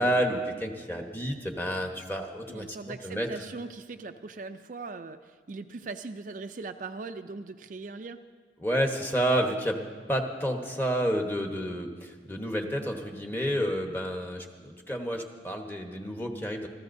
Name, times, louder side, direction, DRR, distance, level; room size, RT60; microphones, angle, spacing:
voice 1, 0.0-3.3 8.6-9.8 10.1-16.7, equal, 10° left, 2 dB, 1.1 m, -30 dB
voice 2, 2.5-8.2, right 3 dB, 45° right, 7 dB, 0.4 m, -40 dB
27.0 x 14.5 x 2.7 m, 1.5 s
head